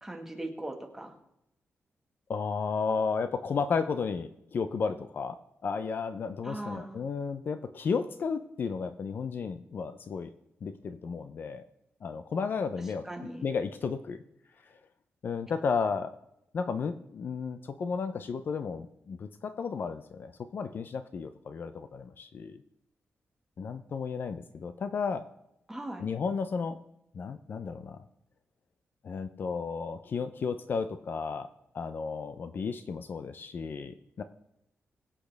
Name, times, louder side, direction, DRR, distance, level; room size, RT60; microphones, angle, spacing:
voice 1, 0.0-1.1 6.4-7.0 13.0-13.4 25.7-26.0, right 1 dB, 10° right, 2 dB, 1.5 m, -39 dB
voice 2, 2.3-10.3 10.6-11.6 12.0-13.1 13.4-14.2 14.7-14.8 15.2-16.2 16.5-22.6 23.6-25.3 26.0-26.8 27.1-28.0 29.0-31.5 31.7-34.2, left 5 dB, 50° left, 10 dB, 0.5 m, -33 dB
22.0 x 8.5 x 3.4 m, 0.83 s
wide cardioid pair, 175°, 5 cm